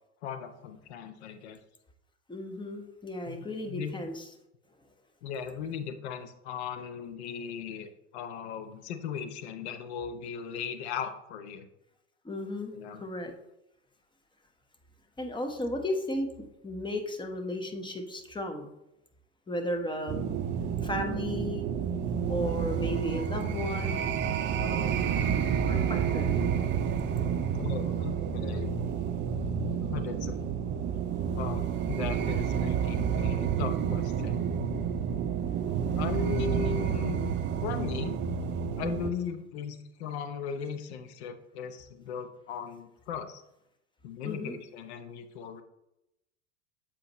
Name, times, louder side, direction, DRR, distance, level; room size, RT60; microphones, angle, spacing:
voice 1, 0.2-1.6 3.3-3.9 5.2-11.7 12.7-13.0 27.6-28.7 29.8-30.4 31.3-34.4 36.0-38.2 38.8-43.4 44.0-45.6, left 7 dB, 65° left, 9 dB, 0.8 m, -37 dB
voice 2, 2.3-4.2 12.2-13.3 15.2-18.7 19.5-20.3 20.8-21.7 22.3-24.1 24.6-25.0 25.7-26.2 44.2-44.6, left 1 dB, 15° left, 4 dB, 1.0 m, -34 dB
sound 1, 20.1-39.1, right 7 dB, 35° right, 0.6 m, -30 dB
7.5 x 4.3 x 3.0 m, 0.86 s
hypercardioid pair, 80°, 35 cm